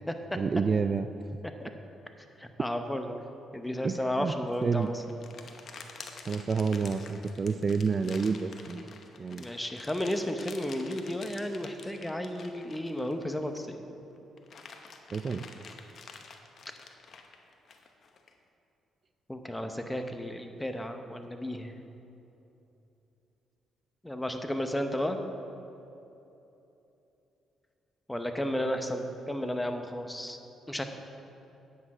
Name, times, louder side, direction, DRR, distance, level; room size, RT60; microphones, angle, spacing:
voice 1, 0.3-1.4 3.8-4.3 4.6-4.9 6.3-8.8 9.2-9.5 15.1-15.4, right 5 dB, 40° right, 10 dB, 0.3 m, -29 dB
voice 2, 2.4-3.1 3.5-5.0 9.4-13.9 19.3-21.7 24.0-25.2 28.1-30.4 30.7-30.8, left 1 dB, 10° left, 6 dB, 0.8 m, -33 dB
sound 1, 4.5-13.8 14.2-18.3, left 5 dB, 55° left, 0.9 m, -48 dB
9.7 x 8.5 x 4.8 m, 2.9 s
cardioid pair, 90°, 0 cm